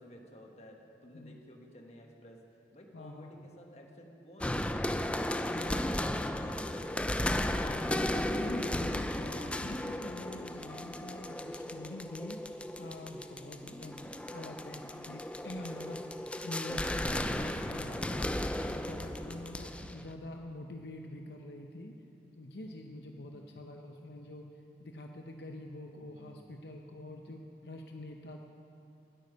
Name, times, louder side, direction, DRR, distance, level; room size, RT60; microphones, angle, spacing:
voice 1, 0.0-2.4 2.7-7.0 23.1-23.7 25.9-26.4, equal, 35° left, 2 dB, 1.3 m, -54 dB
voice 2, 2.9-3.4 5.4-5.8 7.4-12.4 12.8-16.0 16.4-18.3 18.7-21.9 22.3-24.5 24.8-28.4, left 1 dB, 70° left, 3 dB, 0.7 m, -45 dB
sound 1, 4.4-20.1, left 1 dB, 5° left, 0.3 m, -35 dB
10.0 x 8.8 x 9.5 m, 2.7 s
head